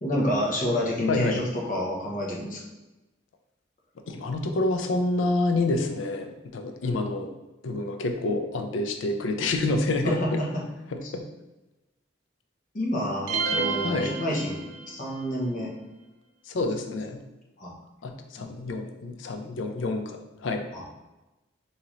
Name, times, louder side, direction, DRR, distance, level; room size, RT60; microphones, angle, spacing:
voice 1, 0.0-2.6 10.0-10.6 11.0-11.1 12.7-15.7 17.6-17.7 18.4-18.5 20.7-20.8, equal, 45° left, -3 dB, 0.8 m, -29 dB
voice 2, 1.1-1.4 4.1-7.3 7.6-10.2 10.9-11.2 13.8-14.1 16.5-17.2 18.0-20.7, left 2 dB, 80° left, 6 dB, 0.4 m, -28 dB
sound 1, 13.3-15.1, right 4 dB, 65° right, 0.4 m, -30 dB
3.7 x 2.8 x 3.0 m, 1.0 s
head